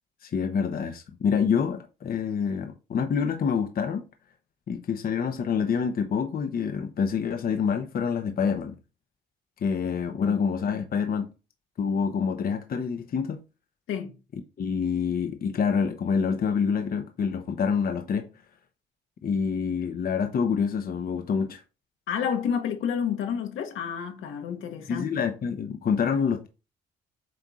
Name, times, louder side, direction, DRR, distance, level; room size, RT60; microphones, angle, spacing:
voice 1, 0.2-4.0 4.7-8.8 9.6-11.3 11.8-13.4 14.6-18.3 19.2-21.6 24.9-26.5, left 6 dB, 50° left, 0.8 m, -27 dB
voice 2, 22.1-25.1, left 7 dB, 80° left, 1.4 m, -30 dB
7.7 x 2.7 x 4.8 m
cardioid pair, 90°, 20 cm